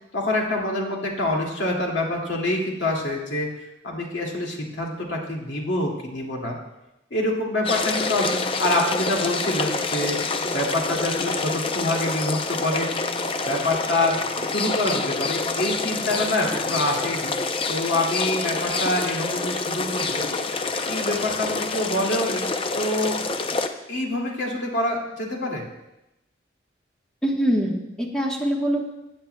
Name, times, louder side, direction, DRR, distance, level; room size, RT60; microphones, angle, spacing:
voice 1, 0.1-3.5 3.8-6.6 7.1-13.2 13.4-17.3 17.7-20.2 20.9-22.5 22.8-23.2 23.9-25.6, left 1 dB, 80° left, -2 dB, 2.2 m, -26 dB
sound 1, 7.6-23.7, left 3 dB, 30° left, 0.5 m, -27 dB
voice 2, 27.2-28.9, equal, 5° left, -1 dB, 1.2 m, -24 dB
15.5 x 8.8 x 2.2 m, 0.92 s
head